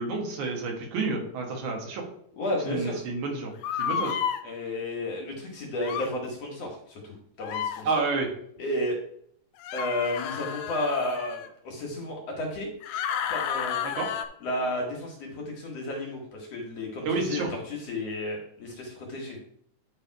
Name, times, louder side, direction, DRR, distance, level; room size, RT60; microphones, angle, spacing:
voice 1, 0.0-2.0 2.7-3.5 3.8-4.2 7.8-8.3 13.8-14.1 17.1-17.5, right 3 dB, 70° right, 1 dB, 2.7 m, -29 dB
voice 2, 2.3-3.0 4.4-7.9 8.6-9.0 9.7-12.7 13.3-13.8 14.4-19.4, left 1 dB, 55° left, -1 dB, 2.2 m, -32 dB
sound 1, 3.6-4.4 5.8-6.1 7.4-7.8 9.6-11.5 12.8-14.3, left 8 dB, 80° left, 2.1 m, -31 dB
9.9 x 3.5 x 4.6 m, 0.67 s
omnidirectional pair, 3.7 m